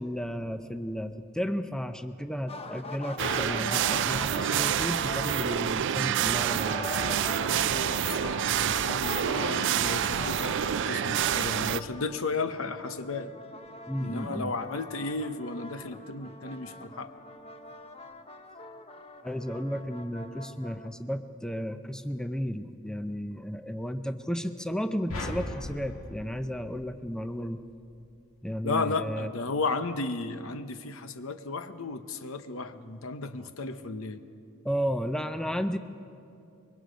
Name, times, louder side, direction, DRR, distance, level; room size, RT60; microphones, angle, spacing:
voice 1, 0.0-6.9 13.9-14.5 19.2-27.6 28.4-29.3 34.6-35.8, equal, 5° left, 8 dB, 0.5 m, -33 dB
sound 1, 2.5-5.9 6.4-12.5 12.8-20.9, left 2 dB, 30° left, 0.9 m, -41 dB
sound 2, 3.2-11.8, right 9 dB, 60° right, 0.4 m, -28 dB
voice 2, 7.5-13.3 14.0-17.1 28.6-34.2, left 3 dB, 70° left, 10 dB, 0.9 m, -34 dB
sound 3, 25.1-27.5, left 1 dB, 85° left, 1.9 m, -39 dB
25.0 x 22.5 x 5.2 m, 2.6 s
head